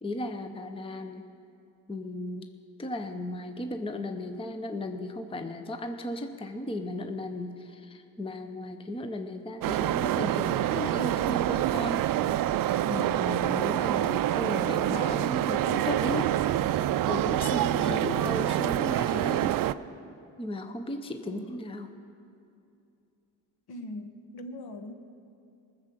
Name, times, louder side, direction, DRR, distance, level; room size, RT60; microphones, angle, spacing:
voice 1, 0.0-1.3 1.9-2.5 2.8-12.0 12.6-16.4 17.1-19.6 20.4-21.9, left 1 dB, 10° left, 7 dB, 0.8 m, -35 dB
sound 1, 9.6-19.7, right 13 dB, 50° right, 0.5 m, -26 dB
voice 2, 12.9-13.2 17.6-18.0 21.3-21.5 23.7-24.9, left 1 dB, 55° left, 7 dB, 1.3 m, -40 dB
19.0 x 6.7 x 7.7 m, 2.6 s
cardioid pair, 85°, 45 cm